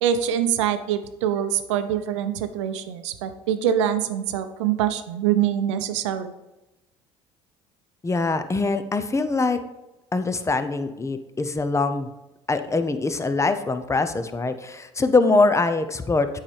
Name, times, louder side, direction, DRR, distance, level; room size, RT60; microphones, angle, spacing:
voice 1, 0.0-6.3, right 9 dB, 85° right, 10 dB, 0.6 m, -24 dB
voice 2, 8.0-9.6 10.1-12.1 12.5-16.4, left 3 dB, 20° left, 10 dB, 0.7 m, -23 dB
8.4 x 5.7 x 3.4 m, 0.99 s
hypercardioid pair, 65°, 15 cm